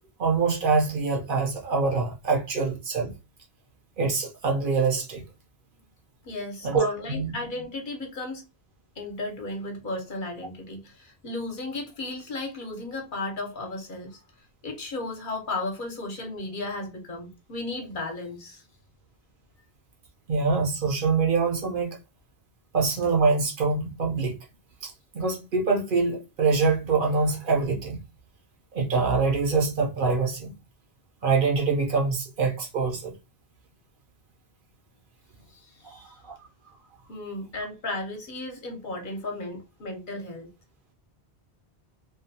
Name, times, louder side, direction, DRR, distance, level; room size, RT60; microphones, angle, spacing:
voice 1, 0.2-3.1 4.0-5.2 6.6-7.3 20.3-22.0 22.7-24.4 24.8-28.0 28.7-30.5 31.2-33.1 35.9-36.4, right 4 dB, 60° right, 0.7 m, -25 dB
voice 2, 6.2-8.4 9.0-14.2 14.6-18.6 35.5-36.2 37.1-40.5, left 2 dB, 55° left, 0.8 m, -35 dB
2.5 x 2.1 x 2.6 m
omnidirectional pair, 1.1 m